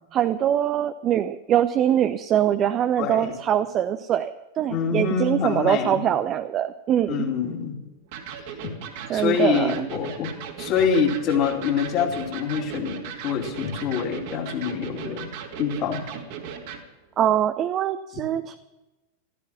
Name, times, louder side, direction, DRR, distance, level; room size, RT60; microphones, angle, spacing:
voice 1, 0.1-7.3 9.1-9.9 17.2-18.6, right 10 dB, 30° right, 10 dB, 0.6 m, -23 dB
voice 2, 3.0-3.3 4.7-6.0 7.1-7.8 8.6-8.7 9.1-10.3 10.6-15.3 15.6-16.0, left 6 dB, 35° left, 2 dB, 2.9 m, -25 dB
Electric guitar, 8.1-16.8, right 7 dB, 50° right, 2.5 m, -37 dB
16.0 x 13.5 x 5.8 m, 1.0 s
figure-of-eight pair, 90°, 0 cm